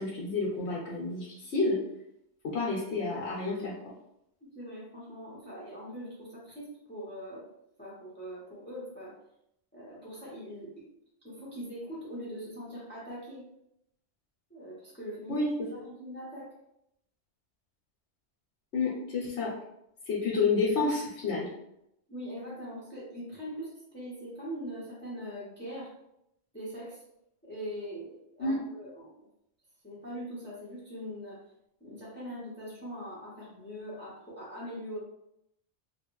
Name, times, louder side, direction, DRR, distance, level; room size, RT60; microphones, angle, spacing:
voice 1, 0.0-1.8 2.5-3.7 15.3-15.5 18.7-19.5 20.1-21.5 28.4-28.5, left 3 dB, 70° left, -6 dB, 1.1 m, -29 dB
voice 2, 4.4-7.4 7.8-9.1 9.7-10.8 11.2-13.4 14.5-15.4 15.7-16.4 22.1-25.9 26.5-27.0 27.4-29.1 29.8-31.4 31.8-35.0, equal, 10° left, -7 dB, 0.8 m, -42 dB
3.1 x 2.4 x 3.0 m, 0.78 s
omnidirectional pair, 1.2 m